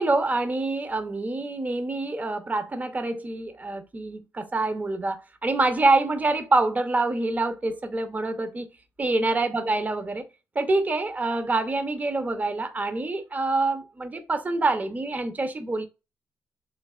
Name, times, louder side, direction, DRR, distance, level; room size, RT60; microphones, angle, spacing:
voice 1, 0.0-8.7 9.0-10.3 10.5-15.9, right 2 dB, 25° right, 0.7 m, -26 dB
3.4 x 3.2 x 2.3 m
cardioid pair, 70°, 6 cm